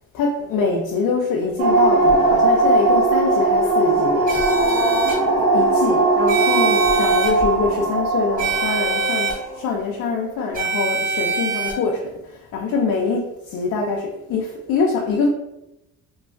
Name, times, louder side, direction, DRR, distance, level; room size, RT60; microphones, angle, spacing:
voice 1, 0.1-4.3 5.5-15.3, left 4 dB, 80° left, 0 dB, 0.5 m, -24 dB
sound 1, 1.6-9.7, right 2 dB, 70° right, 0.7 m, -19 dB
sound 2, 4.3-5.1 6.3-7.3 8.4-9.3 10.5-11.7, right 3 dB, 30° right, 1.4 m, -23 dB
2.9 x 2.3 x 2.3 m, 0.89 s
cardioid pair, 90°, 30 cm